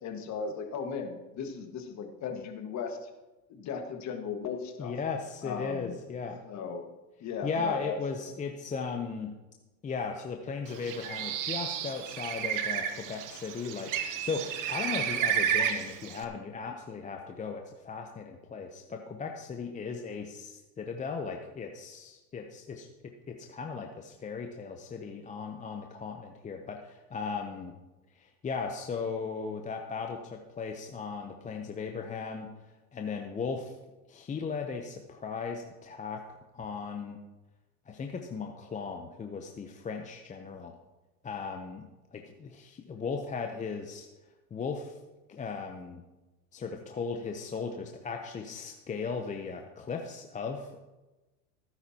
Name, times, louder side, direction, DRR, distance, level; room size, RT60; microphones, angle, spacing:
voice 1, 0.0-3.1 3.5-4.9 5.4-6.0 6.4-6.9 7.2-8.0, left 6 dB, 35° left, 4 dB, 1.7 m, -37 dB
voice 2, 4.8-6.4 7.4-9.3 9.8-13.9 14.2-22.9 23.3-27.7 28.2-32.5 32.9-33.7 34.1-36.2 36.5-37.2 37.9-40.7 41.2-41.9 42.1-44.1 44.5-45.0 45.3-46.0 46.5-50.8, left 5 dB, 15° left, 3 dB, 0.7 m, -37 dB
Bird, 10.7-16.2, right 8 dB, 40° right, 1.1 m, -32 dB
17.0 x 9.8 x 2.9 m, 1.1 s
supercardioid pair, 115°, 49 cm